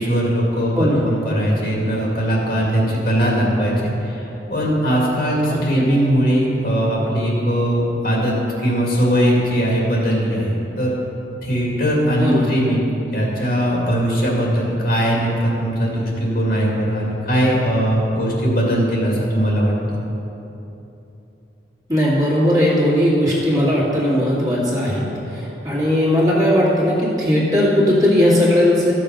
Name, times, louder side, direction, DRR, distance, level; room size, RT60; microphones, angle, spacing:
voice 1, 0.0-10.9 11.4-12.9 13.1-19.7, equal, 50° left, -3 dB, 2.3 m, -20 dB
voice 2, 0.8-1.1 5.5-5.8 12.2-12.5 21.9-28.9, left 1 dB, 20° right, -7 dB, 2.1 m, -18 dB
14.0 x 6.6 x 5.2 m, 3.0 s
head